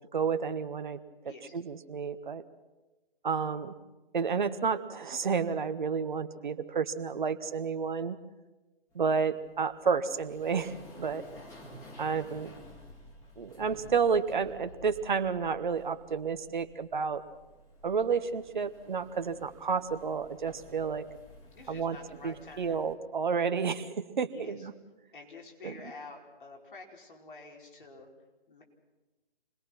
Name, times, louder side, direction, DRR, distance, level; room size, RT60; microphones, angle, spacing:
voice 1, 0.1-1.0 1.5-2.4 3.2-3.7 4.1-8.2 8.9-11.2 12.0-12.5 13.4-17.2 17.8-21.1 21.7-22.0 22.2-24.7 25.6-25.7, right 5 dB, 50° right, 9 dB, 1.5 m, -31 dB
voice 2, 1.2-1.5 19.2-19.5 21.5-22.8 24.3-24.7 25.1-28.1 28.5-28.6, left 3 dB, 55° left, 1 dB, 5.2 m, -49 dB
sound 1, 8.9-22.9, left 1 dB, 10° left, 2.3 m, -53 dB
27.5 x 21.0 x 6.1 m, 1.1 s
figure-of-eight pair, 145°, 30 cm